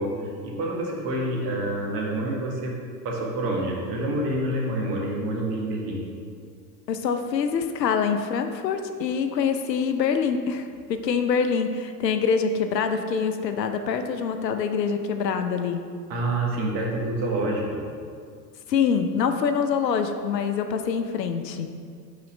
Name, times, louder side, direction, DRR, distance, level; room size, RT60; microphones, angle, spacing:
voice 1, 0.0-2.7 3.0-6.0 16.1-17.8, right 1 dB, 45° right, -2 dB, 1.6 m, -27 dB
voice 2, 6.9-15.8 18.7-21.7, left 6 dB, 75° left, 7 dB, 0.7 m, -25 dB
5.6 x 4.1 x 5.2 m, 2.1 s
figure-of-eight pair, 85°, 50 cm